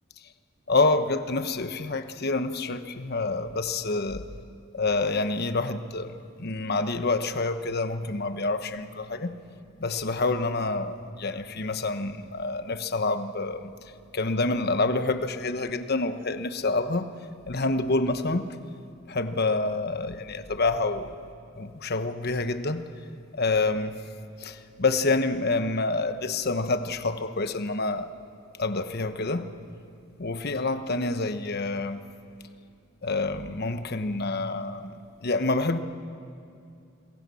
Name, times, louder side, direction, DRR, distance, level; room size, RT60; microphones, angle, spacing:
voice 1, 0.7-4.2 4.7-6.1 6.4-9.3 9.8-13.7 14.1-17.1 17.5-18.5 19.1-21.2 21.5-22.8 23.3-24.0 24.4-28.1 28.6-29.5 30.2-32.0 33.0-34.9 35.2-35.8, left 3 dB, 50° left, 9 dB, 1.1 m, -27 dB
27.0 x 22.5 x 7.1 m, 2.5 s
head